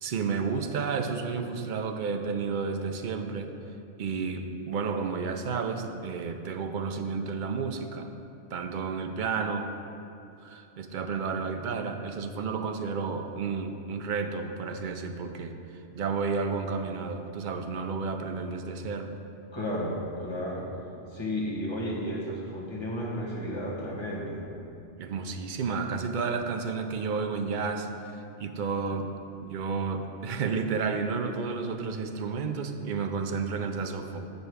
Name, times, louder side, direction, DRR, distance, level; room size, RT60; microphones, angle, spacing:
voice 1, 0.0-3.5 4.0-8.1 8.5-9.7 10.4-15.5 15.9-19.1 25.0-27.9 28.4-29.1 29.4-34.2, right 5 dB, 55° right, 6 dB, 0.5 m, -31 dB
voice 2, 19.5-20.7 21.1-24.4, equal, 20° left, -6 dB, 1.4 m, -33 dB
6.7 x 5.3 x 6.3 m, 2.7 s
omnidirectional pair, 1.3 m